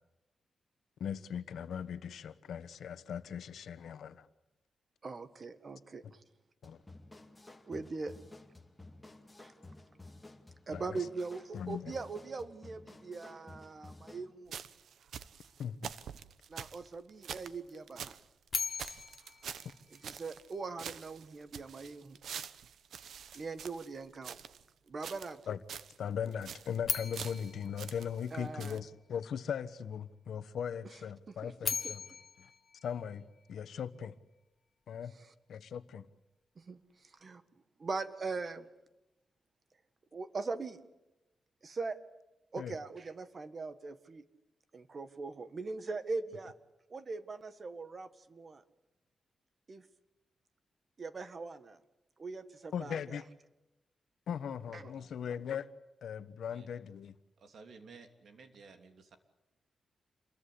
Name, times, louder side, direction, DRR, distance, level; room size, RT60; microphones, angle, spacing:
voice 1, 1.0-4.3 6.6-6.8 10.7-11.0 11.5-11.9 15.6-15.9 25.5-25.6 26.0-32.0 32.4-32.5 32.8-34.1 34.9-35.1 35.5-36.1 42.6-42.7 52.7-53.2 54.3-55.7 56.0-57.1, left 8 dB, 85° left, 12 dB, 1.2 m, -39 dB
voice 2, 5.0-6.2 7.7-8.1 9.4-9.5 10.7-14.6 16.5-18.2 20.0-22.2 23.3-24.4 24.9-25.4 28.3-28.8 31.4-31.5 31.8-31.9 36.6-36.8 37.2-37.4 37.8-38.7 40.1-40.8 41.6-42.0 42.5-44.2 44.7-46.5 46.9-48.6 49.7-49.8 51.0-51.8 52.2-53.2 54.7-54.9, right 4 dB, 40° right, 11 dB, 1.7 m, -41 dB
sound 1, 6.6-14.3, left 2 dB, 10° left, 2.3 m, -53 dB
sound 2, 14.5-18.2 18.5-18.6 18.8-20.5 20.8-24.6 25.0-25.4 25.7-26.0 26.3-26.8 27.1-28.3 28.6-28.8, right 8 dB, 85° right, 1.0 m, -46 dB
sound 3, 18.5-20.6 26.8-29.0 31.4-33.8, left 5 dB, 40° left, 1.4 m, -40 dB
voice 3, 57.4-59.2, right 4 dB, 65° right, 6 dB, 3.0 m, -55 dB
27.5 x 22.5 x 8.6 m, 0.96 s
wide cardioid pair, 135°, 0 cm